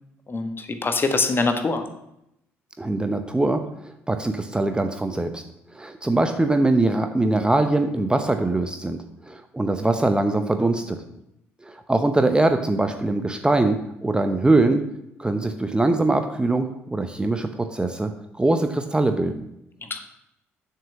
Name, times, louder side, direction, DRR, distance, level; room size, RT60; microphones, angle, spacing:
voice 1, 0.3-1.8 19.9-20.0, left 3 dB, 30° left, 7 dB, 1.4 m, -23 dB
voice 2, 2.8-5.4 5.7-9.0 9.3-11.0 11.6-14.9 15.2-18.1 18.4-19.4, right 2 dB, 10° right, 8 dB, 0.8 m, -22 dB
7.3 x 5.7 x 7.3 m, 0.82 s
figure-of-eight pair, 50°, 7 cm